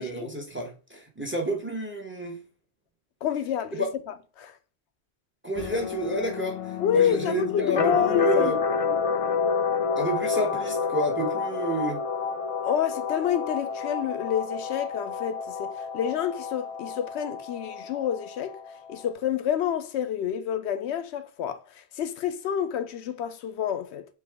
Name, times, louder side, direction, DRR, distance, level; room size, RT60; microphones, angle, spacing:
voice 1, 0.0-2.4 3.7-3.9 5.4-8.6 10.0-12.0, right 1 dB, 15° right, 0.7 m, -30 dB
voice 2, 3.2-3.9 4.4-4.5 6.8-8.5 8.9-9.0 12.6-18.6 18.9-24.1, left 9 dB, 80° left, 0.9 m, -28 dB
sound 1, 5.6-19.1, left 5 dB, 60° left, 0.3 m, -29 dB
4.4 x 2.7 x 3.4 m
omnidirectional pair, 1.1 m